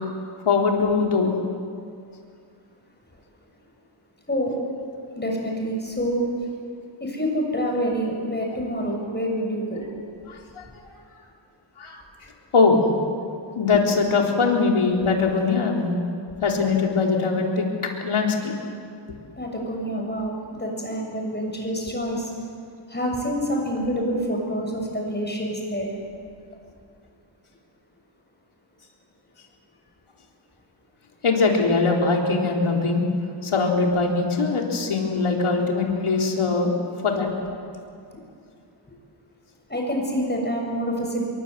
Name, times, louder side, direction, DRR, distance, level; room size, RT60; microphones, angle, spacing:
voice 1, 0.4-1.3 10.3-10.6 11.8-12.0 12.5-12.8 13.5-15.9 16.4-17.7 18.0-18.5 31.2-33.0 33.4-36.8 37.0-37.3, left 4 dB, 90° left, 0 dB, 3.9 m, -21 dB
voice 2, 4.3-4.6 5.1-6.5 7.0-9.9 19.4-22.3 22.9-25.9 39.7-41.2, equal, 20° left, 0 dB, 7.0 m, -27 dB
27.5 x 23.0 x 8.3 m, 2.3 s
wide cardioid pair, 100°, 49 cm